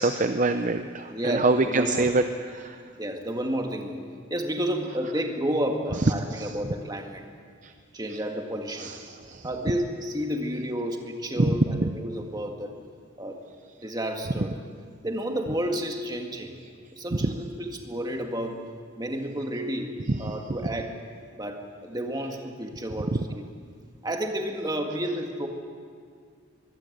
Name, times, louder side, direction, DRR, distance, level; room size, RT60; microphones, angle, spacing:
voice 1, 0.0-2.2 2.5-2.8 6.4-6.5 7.6-7.7 8.8-9.4 11.4-11.5 20.3-20.4, right 3 dB, 35° right, 8 dB, 0.6 m, -25 dB
voice 2, 1.1-2.1 3.0-4.0 4.3-7.2 7.9-8.9 9.4-12.7 13.2-13.4 13.8-14.6 15.0-16.6 16.9-18.6 19.0-21.0 21.4-23.5 24.0-25.5, equal, 20° right, 3 dB, 1.8 m, -31 dB
23.5 x 15.5 x 7.9 m, 2.2 s
head